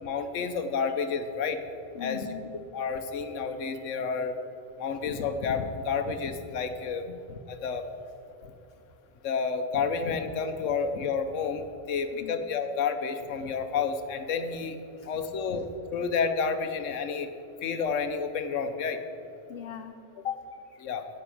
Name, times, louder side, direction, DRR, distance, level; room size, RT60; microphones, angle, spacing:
voice 1, 0.0-1.6 2.0-2.3 2.7-4.3 4.8-7.0 7.3-7.9 9.2-14.8 15.1-17.3 17.6-19.0 20.8-21.1, left 5 dB, 80° left, 9 dB, 1.2 m, -30 dB
voice 2, 1.9-2.5 7.1-7.2 8.4-8.5 12.2-12.4 15.0-15.1 19.5-20.8, left 8 dB, 65° left, 8 dB, 0.7 m, -39 dB
11.0 x 6.8 x 8.5 m, 2.7 s
omnidirectional pair, 1.3 m